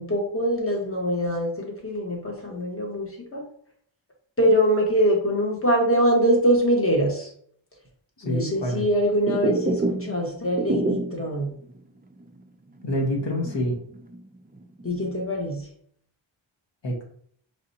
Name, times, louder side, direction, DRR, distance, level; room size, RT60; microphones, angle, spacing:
voice 1, 0.0-3.4 4.4-7.3 8.2-11.5 14.8-15.7, equal, 25° left, -1 dB, 1.3 m, -23 dB
voice 2, 8.2-8.8 12.8-13.7 16.8-17.0, equal, 60° left, -1 dB, 1.4 m, -26 dB
sound 1, 9.3-10.2 10.4-11.3 11.7-11.8 12.2-12.3 12.8-14.2 14.5-15.2, right 3 dB, 20° right, 0.4 m, -27 dB
4.7 x 3.4 x 2.8 m, 0.63 s
wide cardioid pair, 65°, 50 cm